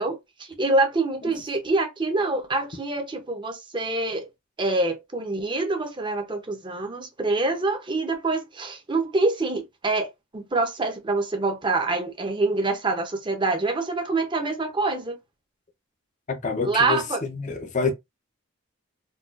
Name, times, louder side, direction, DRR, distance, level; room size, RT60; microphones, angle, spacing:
voice 1, 0.0-4.3 4.6-10.1 10.3-15.2 16.6-17.2, right 2 dB, 25° right, 0.7 m, -25 dB
voice 2, 16.3-17.9, left 4 dB, 40° left, 0.6 m, -27 dB
3.9 x 2.3 x 2.4 m
head